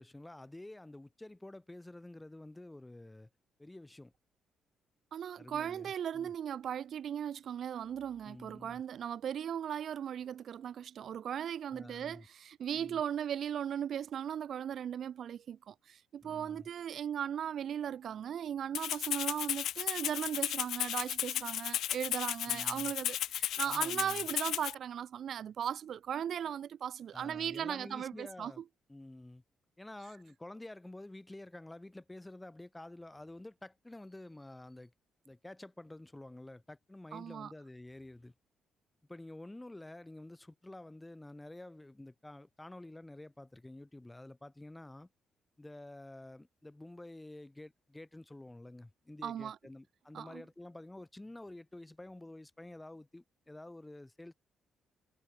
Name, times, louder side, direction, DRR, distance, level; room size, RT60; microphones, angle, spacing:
voice 1, 0.0-3.3 3.6-4.1 5.4-6.3 8.2-8.8 11.7-12.3 12.7-13.0 16.2-16.7 22.5-22.9 23.6-24.3 27.1-28.6 28.9-29.4 29.8-34.9 35.2-38.3 39.1-45.1 45.6-54.3, left 1 dB, 10° left, 4.7 m, -49 dB
voice 2, 5.1-28.5 37.1-37.5 49.2-49.6 50.1-50.4, right 9 dB, 60° right, 0.4 m, -37 dB
Rattle (instrument), 18.7-24.7, left 12 dB, 80° left, 0.5 m, -34 dB
cardioid pair, 90°, 0 cm